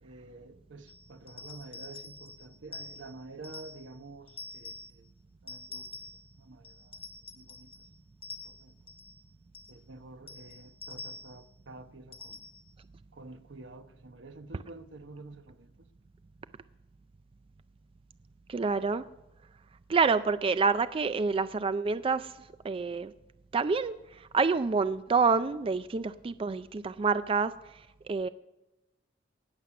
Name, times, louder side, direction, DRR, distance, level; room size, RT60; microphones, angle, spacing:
voice 1, 0.0-5.1 5.4-6.1 6.4-7.0 7.3-7.9 8.4-8.7 9.7-12.4 13.1-15.9, right 3 dB, 85° right, 0.9 m, -49 dB
sound 1, 0.9-3.9 4.3-5.0 5.5-6.3 6.6-7.9 8.2-9.2 9.5-9.8 10.3-11.4 12.1-12.7, left 3 dB, 30° left, 1.0 m, -46 dB
voice 2, 18.5-19.0 19.9-22.3 22.6-23.1 23.5-24.0 24.3-27.5 28.1-28.3, right 4 dB, 30° right, 0.3 m, -27 dB
18.5 x 7.4 x 5.9 m
head